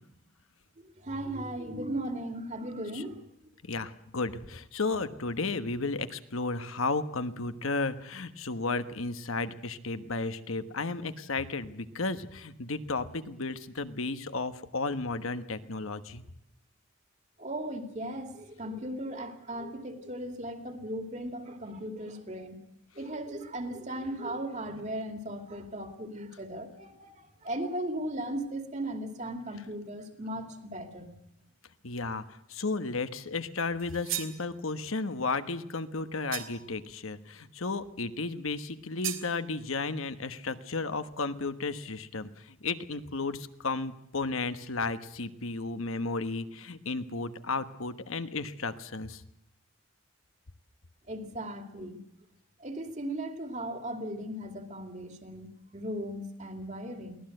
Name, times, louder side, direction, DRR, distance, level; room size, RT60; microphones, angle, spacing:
voice 1, 1.0-3.2 17.4-22.6 23.0-31.1 51.1-52.0 52.6-57.2, right 1 dB, 35° right, 6 dB, 2.5 m, -37 dB
voice 2, 3.7-16.2 31.8-49.2, left 3 dB, 80° left, 10 dB, 1.3 m, -33 dB
African metal blade for farming, 33.8-34.4 36.3-36.8 39.0-39.3, right 12 dB, 75° right, 2.3 m, -36 dB
23.5 x 18.0 x 7.9 m, 0.79 s
head